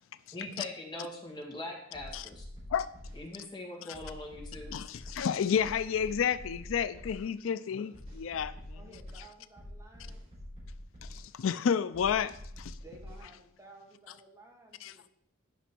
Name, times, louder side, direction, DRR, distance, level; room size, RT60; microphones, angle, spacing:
voice 1, 0.3-2.4 3.2-4.7 7.7-7.8, left 2 dB, 20° left, 2.1 m, -42 dB
sound 1, 1.9-3.2 3.9-5.2 5.6-7.2 7.9-9.2 9.6-11.2 11.9-13.2, left 1 dB, 30° right, 4.0 m, -46 dB
voice 2, 4.7-8.8 11.0-12.8 14.8-15.1, left 7 dB, 85° left, 0.4 m, -31 dB
voice 3, 8.8-10.3 12.8-15.1, right 2 dB, 15° right, 1.5 m, -55 dB
10.0 x 6.0 x 4.4 m
head